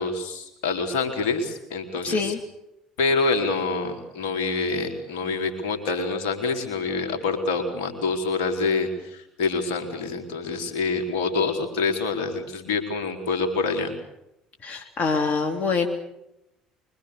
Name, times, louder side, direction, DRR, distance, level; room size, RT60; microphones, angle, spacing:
voice 1, 0.0-2.3 3.0-13.9, left 4 dB, 70° left, 4 dB, 4.6 m, -26 dB
voice 2, 2.0-2.4 14.6-15.9, left 4 dB, 45° left, 3 dB, 3.2 m, -25 dB
25.0 x 24.0 x 6.9 m, 0.87 s
figure-of-eight pair, 55°, 3 cm